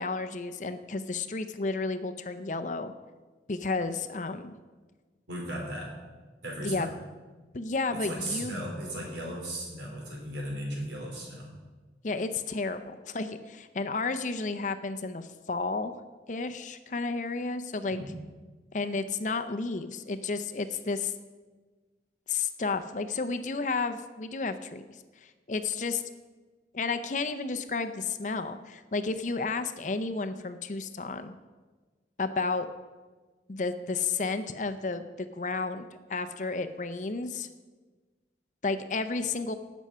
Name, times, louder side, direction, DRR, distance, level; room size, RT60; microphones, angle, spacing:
voice 1, 0.0-2.9 3.5-4.6 6.6-6.9 7.5-8.5 12.0-15.9 16.3-18.0 18.7-21.1 22.3-24.8 25.2-26.0 26.7-31.3 32.2-32.7 33.5-37.5 38.6-39.5, left 4 dB, 45° left, 9 dB, 0.6 m, -32 dB
voice 2, 5.3-5.9 6.4-6.9 7.9-11.5 17.9-18.1, right 1 dB, 80° right, -1 dB, 3.9 m, -36 dB
18.0 x 6.3 x 5.6 m, 1.3 s
head